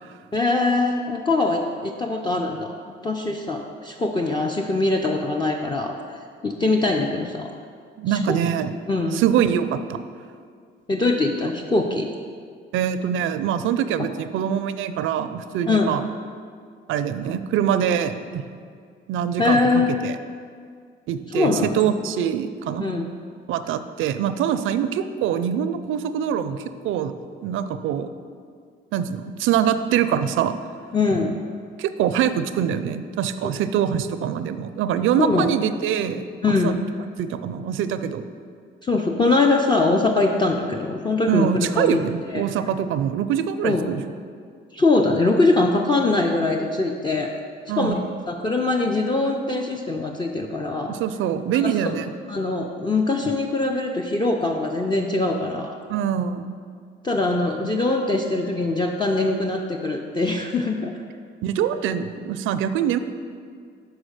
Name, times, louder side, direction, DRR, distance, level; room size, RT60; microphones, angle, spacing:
voice 1, 0.3-2.7 3.0-7.5 8.1-8.4 8.9-9.2 10.9-12.1 15.7-15.9 19.4-19.9 21.3-21.9 22.8-23.1 30.9-31.4 35.2-35.5 36.4-36.8 38.8-42.0 42.3-42.4 43.6-43.9 44.7-47.3 47.7-48.0 48.3-50.9 51.5-51.9 52.3-55.8 57.0-60.9, left 3 dB, 20° left, 2 dB, 0.5 m, -22 dB
voice 2, 8.0-8.7 9.1-10.0 12.7-16.1 16.9-18.4 19.1-20.2 21.1-22.9 23.5-27.1 27.4-28.1 28.9-30.6 31.8-36.8 37.2-38.2 41.3-44.0 47.7-48.1 50.9-52.1 55.9-56.5 57.6-57.7 61.4-63.0, right 9 dB, 80° right, 11 dB, 0.4 m, -24 dB
6.1 x 4.7 x 6.4 m, 2.1 s
cardioid pair, 90°, 20 cm